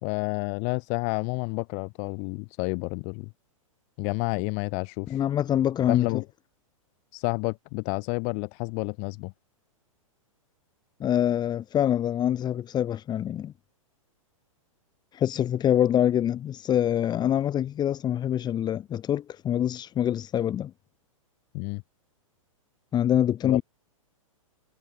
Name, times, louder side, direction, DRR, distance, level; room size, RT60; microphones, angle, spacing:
voice 1, 0.0-3.3 4.0-5.2 5.9-6.2 7.1-9.3 21.5-21.8 23.4-23.6, left 39 dB, 40° left, 2.6 m, -30 dB
voice 2, 5.1-6.1 11.0-13.5 15.1-20.7 22.9-23.6, left 10 dB, 25° left, 3.5 m, -25 dB
hypercardioid pair, 125°, 18 cm